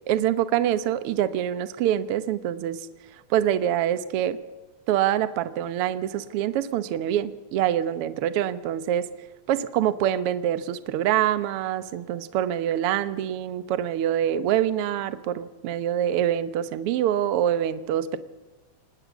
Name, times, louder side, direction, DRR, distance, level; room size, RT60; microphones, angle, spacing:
voice 1, 0.1-2.8 3.3-4.4 4.9-9.1 9.5-18.2, right 11 dB, 65° right, 13 dB, 1.5 m, -25 dB
25.5 x 20.0 x 7.3 m, 1.2 s
omnidirectional pair, 3.6 m